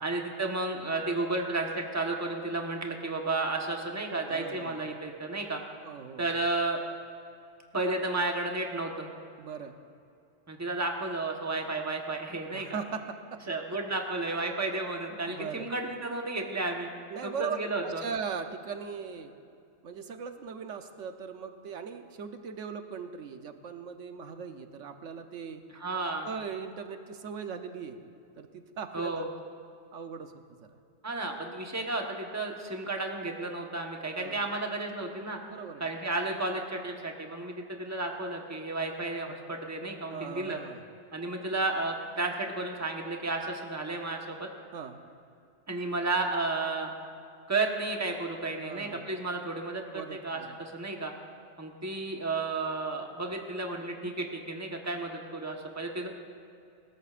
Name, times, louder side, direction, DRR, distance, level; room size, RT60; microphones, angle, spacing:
voice 1, 0.0-5.6 6.2-6.8 7.7-9.1 10.5-12.8 13.5-16.9 17.2-18.0 25.7-26.3 28.9-29.3 31.0-35.4 35.8-40.6 41.1-44.5 45.7-46.9 47.5-51.1 51.6-56.1, right 2 dB, 15° right, 1 dB, 1.1 m, -32 dB
voice 2, 4.3-4.8 5.8-6.3 9.4-9.8 12.5-13.8 15.2-15.7 17.1-19.3 19.8-25.6 26.2-28.0 28.4-29.3 29.9-30.7 34.1-34.5 35.5-35.9 40.1-40.8 44.7-45.0 48.6-49.1 49.9-50.6, right 6 dB, 90° right, 7 dB, 1.2 m, -39 dB
20.5 x 18.0 x 2.5 m, 2.6 s
omnidirectional pair, 1.2 m